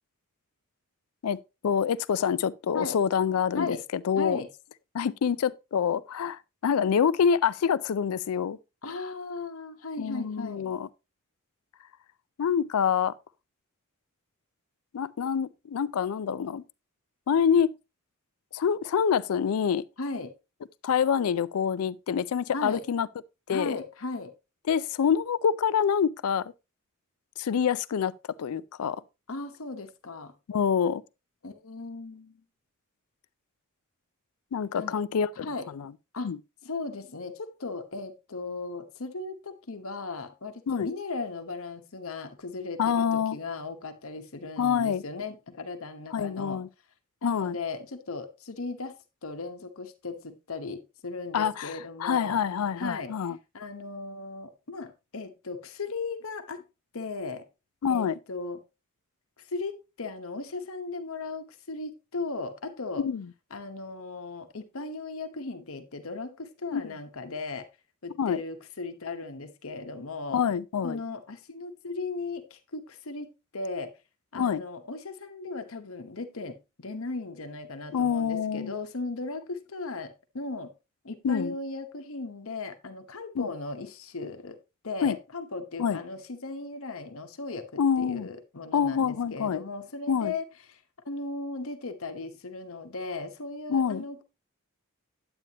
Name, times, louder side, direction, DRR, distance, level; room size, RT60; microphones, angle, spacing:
voice 1, 1.2-3.8 4.0-4.4 4.9-8.6 10.0-10.9 12.4-13.1 14.9-16.6 17.3-17.7 18.5-19.8 20.8-23.1 23.5-23.8 24.7-26.5 27.4-28.1 28.4-29.0 30.5-31.0 34.5-35.9 36.2-36.4 40.7-40.9 42.8-43.4 44.6-45.0 46.1-46.7 47.2-47.6 51.3-53.4 57.8-58.1 63.0-63.2 66.7-66.9 68.2-68.4 70.3-71.0 74.3-74.6 77.9-78.7 81.2-81.5 83.4-83.5 85.0-85.2 85.8-86.0 87.8-88.3 88.7-89.6 90.1-90.3 93.7-94.0, left 7 dB, 80° left, 0.4 m, -26 dB
voice 2, 4.2-4.5 8.8-10.7 20.0-20.3 22.5-22.8 23.5-24.3 29.3-30.3 31.4-32.4 34.7-35.0 35.4-35.7 36.1-36.3 36.6-46.6 47.2-49.0 49.2-52.4 52.8-53.1 53.5-56.6 56.9-57.5 57.9-58.6 59.4-63.0 63.5-67.7 68.0-70.4 70.8-73.9 74.3-80.7 81.0-84.6 84.8-90.8 91.0-94.2, left 3 dB, 65° left, 1.1 m, -37 dB
9.1 x 8.9 x 2.9 m
head